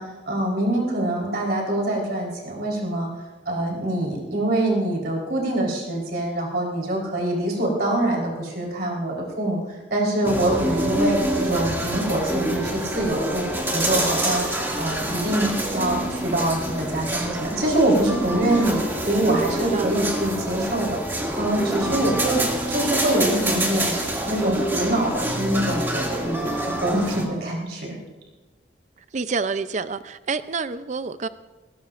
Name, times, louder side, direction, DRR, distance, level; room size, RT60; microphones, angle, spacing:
voice 1, 0.0-3.1 3.5-14.5 14.8-22.4 22.7-24.0 24.2-28.0, right 1 dB, 60° right, 4.1 m, -24 dB
sound 1, 10.2-27.2, right 1 dB, 15° right, 2.2 m, -26 dB
voice 2, 18.5-18.9 19.3-19.4 19.7-19.9 29.1-31.3, right 4 dB, 40° right, 0.5 m, -28 dB
20.0 x 19.0 x 2.5 m
head